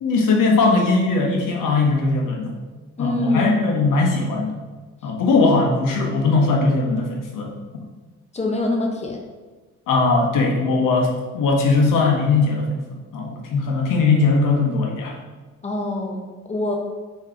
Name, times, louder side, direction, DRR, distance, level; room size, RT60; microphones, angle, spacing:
voice 1, 0.0-2.5 3.0-4.5 5.0-7.5 9.9-15.2, left 3 dB, 75° left, 0 dB, 1.0 m, -19 dB
voice 2, 3.0-3.5 8.3-9.2 15.6-16.2 16.5-16.7, left 2 dB, 20° left, 1 dB, 0.7 m, -24 dB
3.7 x 3.1 x 4.4 m, 1.3 s
cardioid pair, 120°, 32 cm